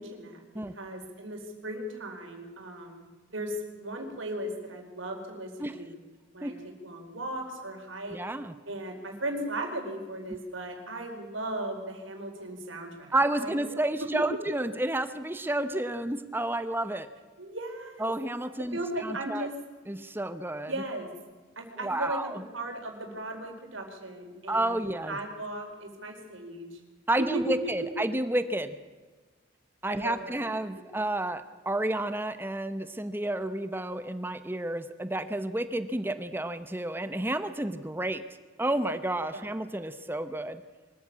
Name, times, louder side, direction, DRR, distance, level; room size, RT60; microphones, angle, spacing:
voice 1, 0.0-6.0 6.3-8.2 8.6-13.5 17.4-18.1 18.6-19.5 20.7-21.1 21.6-24.8 25.1-26.8 27.2-27.6 29.9-30.5 39.3-39.4, right 1 dB, 85° right, 3 dB, 4.6 m, -37 dB
voice 2, 8.1-8.6 13.1-17.1 18.0-19.5 19.9-20.7 21.8-22.4 24.5-25.2 27.1-28.8 29.8-38.2 38.6-40.6, right 1 dB, 10° right, 11 dB, 0.8 m, -30 dB
24.0 x 14.0 x 8.6 m, 1.4 s
head